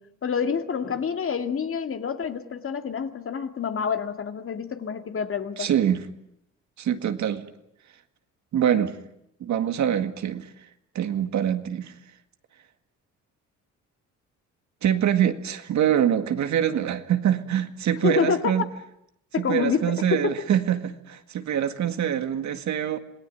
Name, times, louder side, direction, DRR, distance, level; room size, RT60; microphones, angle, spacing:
voice 1, 0.0-5.7 18.0-18.6 19.3-20.4, left 6 dB, 45° left, 7 dB, 2.2 m, -27 dB
voice 2, 5.6-6.0 6.8-7.5 8.5-9.0 9.4-10.5 10.9-11.9 14.8-18.7 19.4-23.0, right 9 dB, 70° right, 8 dB, 2.0 m, -24 dB
27.0 x 18.5 x 9.3 m, 0.79 s
cardioid pair, 90°, 30 cm